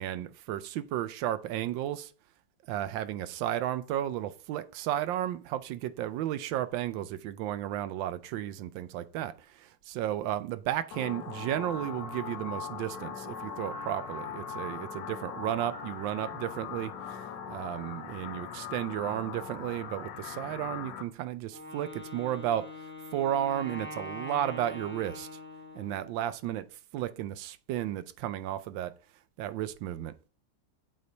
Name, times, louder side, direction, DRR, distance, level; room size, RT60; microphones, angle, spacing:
voice 1, 0.0-2.1 2.7-9.3 9.6-17.2 17.5-22.7 23.1-25.3 25.7-26.7 26.9-28.9 29.4-30.1, right 12 dB, 85° right, 1.3 m, -33 dB
sound 1, 10.9-21.0, left 7 dB, 75° left, 1.4 m, -40 dB
Wind instrument woodwind instrument, 21.5-26.3, left 2 dB, 10° left, 0.6 m, -43 dB
8.0 x 3.2 x 4.0 m
omnidirectional pair, 2.0 m